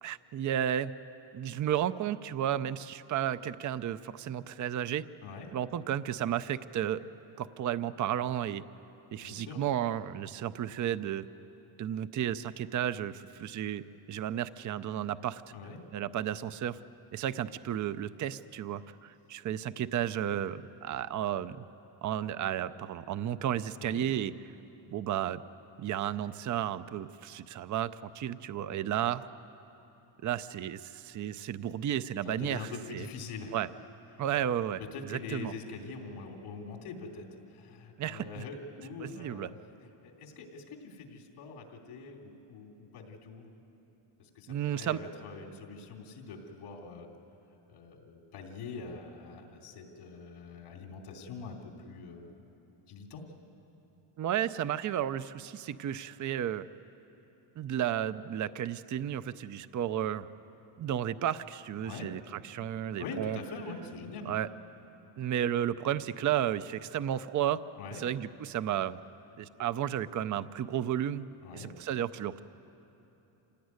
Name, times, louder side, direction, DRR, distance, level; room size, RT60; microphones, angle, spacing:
voice 1, 0.0-0.9 1.3-5.1 5.5-7.0 7.4-8.6 9.1-11.3 11.8-15.4 15.9-16.8 17.1-21.6 22.0-24.3 24.9-25.4 25.8-29.3 30.2-33.1 33.5-33.7 34.2-34.8 35.1-35.5 38.0-38.3 39.0-39.5 44.5-45.0 54.2-56.7 57.6-60.3 60.8-63.4 64.3-64.5 65.2-67.6 68.0-69.0 69.4-71.3 71.5-72.4, right 10 dB, 40° right, 14 dB, 0.6 m, -33 dB
voice 2, 5.2-5.5 9.2-9.6 15.5-15.8 23.8-24.1 32.2-33.6 34.1-34.2 34.8-43.5 44.2-47.1 47.7-52.3 52.9-53.2 61.8-62.1 63.0-64.3 67.8-68.0 71.4-71.8, left 4 dB, 85° left, 2 dB, 3.2 m, -44 dB
26.5 x 17.0 x 9.6 m, 3.0 s
cardioid pair, 135°, 50 cm